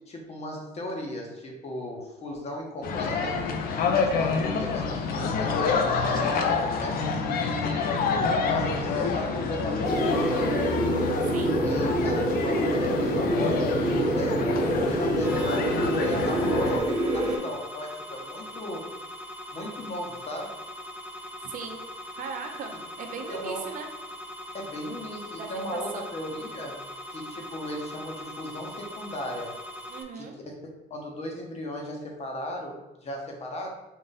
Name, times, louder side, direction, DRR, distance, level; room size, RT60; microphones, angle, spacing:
voice 1, 0.1-3.4 3.9-8.0 8.5-10.6 11.6-18.8 19.5-20.5 23.3-23.6 24.5-26.8 27.1-29.5 30.1-30.5 30.9-33.7, left 1 dB, 40° left, 1 dB, 1.0 m, -37 dB
sound 1, 2.8-16.8, left 4 dB, 60° left, 0.6 m, -27 dB
voice 2, 5.7-6.2 11.3-11.6 21.4-21.9 22.2-23.9 25.3-26.1 29.9-30.4, right 5 dB, 55° right, 4 dB, 0.6 m, -38 dB
sound 2, 9.8-17.4, right 1 dB, 25° right, 1.3 m, -26 dB
sound 3, 15.2-30.0, equal, 10° right, 0.5 m, -41 dB
3.9 x 2.5 x 3.9 m, 1.0 s
cardioid pair, 110°, 17 cm